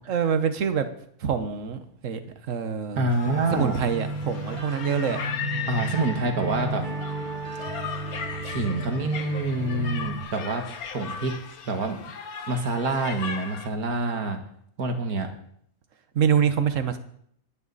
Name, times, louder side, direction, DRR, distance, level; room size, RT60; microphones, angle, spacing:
voice 1, 0.1-0.9 1.2-3.1 3.5-5.2 16.1-17.0, right 7 dB, 60° right, 9 dB, 1.4 m, -25 dB
voice 2, 3.0-3.7 5.7-6.9 8.4-10.6 10.9-11.3 11.7-12.0 12.5-14.4 14.8-15.3, right 2 dB, 85° right, 5 dB, 2.1 m, -26 dB
sound 1, 3.1-13.7, left 6 dB, 80° left, 1.6 m, -37 dB
sound 2, 3.2-10.2, right 2 dB, 35° right, 1.6 m, -33 dB
22.0 x 9.9 x 4.1 m, 0.68 s
omnidirectional pair, 1.5 m